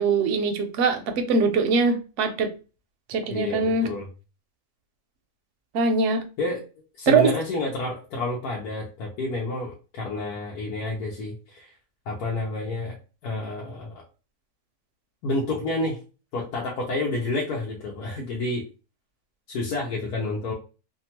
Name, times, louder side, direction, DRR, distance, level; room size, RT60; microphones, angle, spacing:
voice 1, 0.0-2.5 3.1-3.9 5.7-6.2 7.1-7.3, right 4 dB, 65° right, 0.8 m, -22 dB
voice 2, 3.3-4.1 6.4-6.6 7.0-11.7 12.1-14.0 15.2-16.0 16.3-18.6 19.5-20.5, left 2 dB, 90° left, 1.2 m, -29 dB
2.8 x 2.3 x 2.8 m
omnidirectional pair, 1.6 m